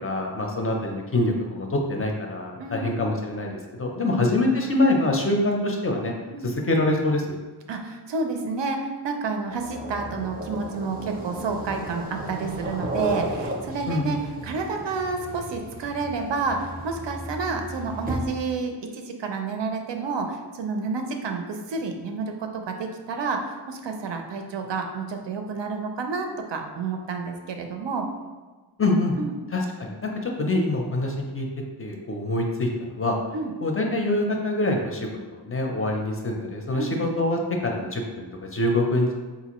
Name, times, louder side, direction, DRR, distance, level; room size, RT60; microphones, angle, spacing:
voice 1, 0.0-6.1 6.4-7.3 13.9-14.2 28.8-29.2 29.5-31.5 31.8-33.2 33.6-39.1, left 2 dB, 35° left, 1 dB, 0.4 m, -25 dB
voice 2, 2.6-2.9 4.0-4.3 6.3-6.5 7.7-14.2 14.4-28.1 29.2-29.4 33.3-33.5 36.7-37.0, right 4 dB, 80° right, 4 dB, 0.5 m, -30 dB
sound 1, 9.4-18.6, right 1 dB, 20° right, 0.5 m, -34 dB
4.0 x 2.5 x 2.9 m, 1.3 s
wide cardioid pair, 120°, 42 cm